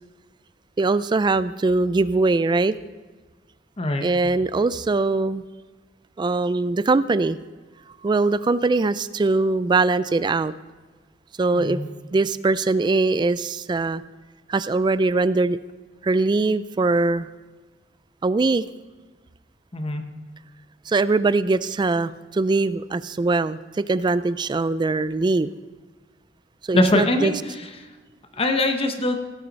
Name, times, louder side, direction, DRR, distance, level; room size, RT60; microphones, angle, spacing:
voice 1, 0.8-2.8 4.0-5.4 6.2-7.4 8.0-10.5 11.4-11.8 12.1-14.0 14.5-15.6 16.0-17.3 18.2-18.6 20.9-25.5 26.7-27.3, right 3 dB, 25° right, 16 dB, 0.3 m, -21 dB
voice 2, 3.8-4.1 11.5-11.9 19.7-20.1 26.7-27.7 28.3-29.2, left 1 dB, 30° left, 6 dB, 0.9 m, -22 dB
17.0 x 8.7 x 4.1 m, 1.3 s
head